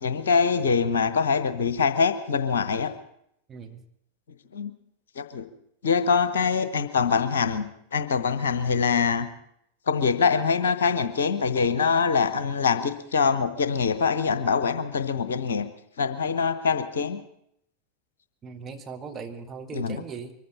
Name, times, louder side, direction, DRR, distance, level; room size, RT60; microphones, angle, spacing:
voice 1, 0.0-2.9 4.5-4.7 5.2-5.5 5.8-7.6 7.9-9.3 9.9-15.6 16.0-17.2 19.7-20.0, left 5 dB, 65° left, 11 dB, 1.1 m, -24 dB
voice 2, 3.5-3.8 18.4-20.3, right 5 dB, 25° right, 5 dB, 1.6 m, -38 dB
23.5 x 14.5 x 4.2 m, 0.74 s
figure-of-eight pair, 90°, 0 cm